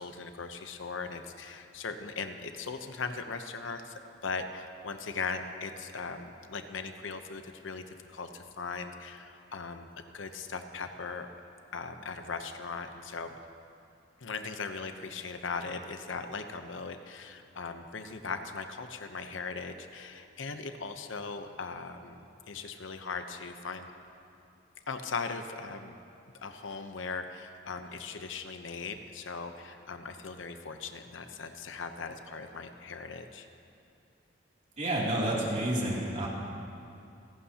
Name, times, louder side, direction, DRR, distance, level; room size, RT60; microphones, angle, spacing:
voice 1, 0.0-9.9 10.1-11.3 11.7-13.4 14.2-23.9 24.9-26.0 26.4-33.5, left 4 dB, 80° left, 7 dB, 0.8 m, -39 dB
voice 2, 34.8-36.3, right 1 dB, 40° right, -5 dB, 2.8 m, -29 dB
29.0 x 11.5 x 2.9 m, 2.6 s
head